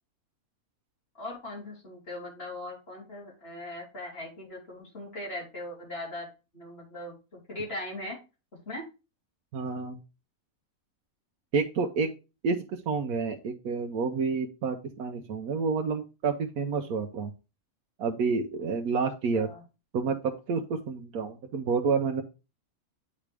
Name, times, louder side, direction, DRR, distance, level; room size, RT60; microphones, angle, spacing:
voice 1, 1.2-6.3 6.5-8.2 8.7-8.8 19.3-19.6, left 1 dB, 40° left, -3 dB, 3.6 m, -39 dB
voice 2, 9.5-10.0 11.5-12.1 12.4-17.3 18.0-19.5 19.9-22.2, right 5 dB, 90° right, 3 dB, 1.3 m, -29 dB
8.6 x 5.0 x 3.3 m, 0.28 s
omnidirectional pair, 1.5 m